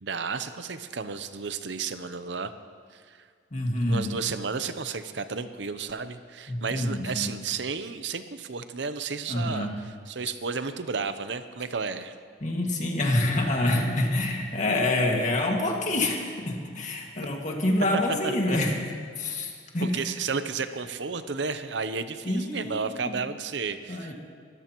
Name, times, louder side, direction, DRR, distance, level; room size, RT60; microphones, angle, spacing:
voice 1, 0.0-2.5 2.9-3.2 3.9-12.1 17.9-18.4 19.8-24.1, right 5 dB, 80° right, 10 dB, 0.7 m, -32 dB
voice 2, 3.5-4.1 6.5-7.3 9.3-9.8 12.4-18.8 19.2-20.1 22.2-23.1 23.9-24.1, left 1 dB, 45° left, 0 dB, 2.0 m, -27 dB
23.0 x 14.0 x 3.1 m, 2.1 s
head